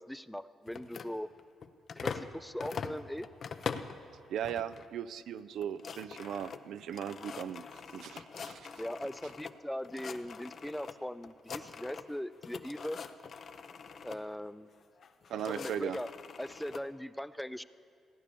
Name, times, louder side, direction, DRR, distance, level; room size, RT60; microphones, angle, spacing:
voice 1, 0.0-1.3 1.9-3.3 8.8-13.0 14.0-14.8 15.5-16.1 16.4-17.6, equal, 5° left, 15 dB, 0.3 m, -40 dB
sound 1, 0.7-2.3 2.6-4.0 4.4-4.9 5.2-5.3 5.5-9.5 9.8-10.9 11.2-12.2 12.4-14.2 15.0-16.8, left 6 dB, 50° left, 0.7 m, -43 dB
voice 2, 4.3-7.6 7.9-8.7 15.3-16.0, right 9 dB, 75° right, 13 dB, 0.5 m, -38 dB
16.0 x 9.6 x 6.9 m, 2.4 s
cardioid pair, 90°, 0 cm